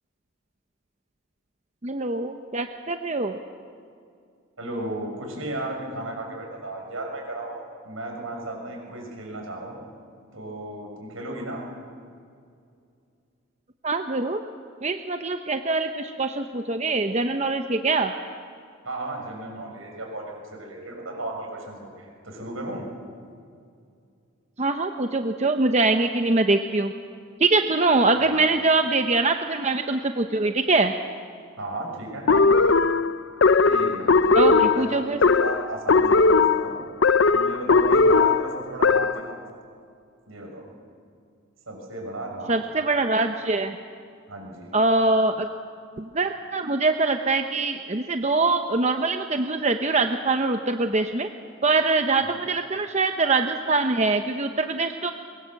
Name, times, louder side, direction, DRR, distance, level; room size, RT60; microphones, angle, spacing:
voice 1, 1.8-3.4 13.8-14.4 14.8-18.1 24.6-26.9 27.4-30.9 34.3-35.2 42.5-43.8 44.7-45.5 46.0-51.3 51.6-55.1, right 3 dB, 30° right, 6 dB, 0.8 m, -23 dB
voice 2, 4.6-9.8 10.3-11.6 18.8-22.9 28.1-28.4 31.6-32.5 33.6-36.8 37.3-39.6 40.3-40.7 41.7-42.6 44.3-44.7 52.3-52.5, right 1 dB, 75° right, 0 dB, 6.8 m, -35 dB
sound 1, 32.3-39.3, left 4 dB, 60° left, 0.6 m, -19 dB
23.0 x 23.0 x 7.8 m, 2.4 s
head